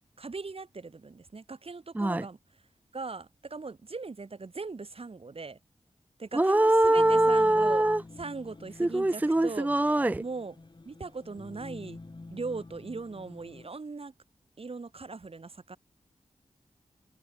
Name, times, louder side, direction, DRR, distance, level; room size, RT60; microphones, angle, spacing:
voice 1, 0.2-2.4 2.9-5.6 6.2-7.9 8.2-9.7 10.2-10.6 10.8-12.0 12.3-14.1 14.6-15.8, right 4 dB, 55° right, 4.3 m, -39 dB
voice 2, 6.3-8.0 8.8-10.2, right 1 dB, 15° right, 0.4 m, -23 dB
sound 1, 7.0-13.7, left 3 dB, 40° left, 7.9 m, -47 dB
cardioid pair, 50°, 12 cm